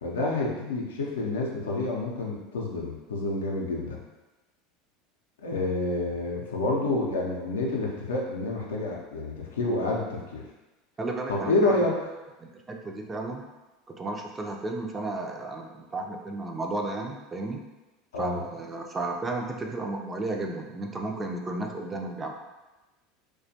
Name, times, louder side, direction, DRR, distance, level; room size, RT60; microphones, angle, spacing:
voice 1, 0.0-4.0 5.4-10.4 11.3-12.0 18.1-18.4, left 2 dB, 85° left, -2 dB, 0.5 m, -28 dB
voice 2, 11.0-11.9 12.4-13.4 13.9-17.6 18.2-22.3, right 2 dB, 20° right, 1 dB, 0.4 m, -33 dB
2.4 x 2.2 x 2.7 m, 1.1 s
hypercardioid pair, 85°, 0 cm